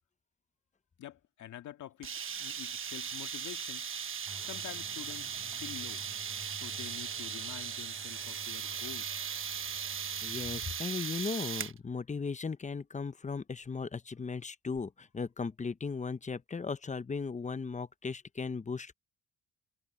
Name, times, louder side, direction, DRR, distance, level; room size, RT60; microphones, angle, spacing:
voice 1, 1.0-3.9 4.4-6.0 6.5-9.2, left 12 dB, 75° left, 2.0 m, -47 dB
sound 1, 2.0-11.8, right 7 dB, 45° right, 1.2 m, -38 dB
sound 2, 4.3-10.7, right 1 dB, 5° right, 0.9 m, -53 dB
voice 2, 10.2-18.9, left 5 dB, 25° left, 0.9 m, -37 dB
cardioid pair, 90°, 30 cm